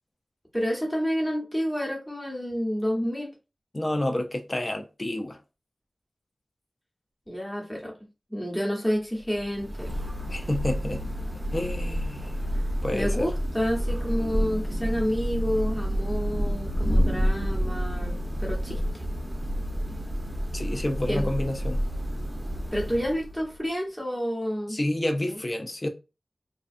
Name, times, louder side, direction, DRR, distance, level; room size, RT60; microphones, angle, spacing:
voice 1, 0.5-3.3 7.3-7.9 8.3-9.9 12.9-18.1 18.4-18.8 21.1-21.3 22.7-24.8 25.3-25.4, equal, 10° left, 1.0 m, -29 dB
voice 2, 3.7-5.4 10.3-11.0 11.5-12.3 12.8-13.3 20.5-21.8 24.7-25.9, left 1 dB, 35° left, 0.5 m, -29 dB
Thunder / Rain, 9.2-23.6, equal, 20° right, 0.7 m, -29 dB
2.6 x 2.3 x 2.5 m
wide cardioid pair, 60°, 0 cm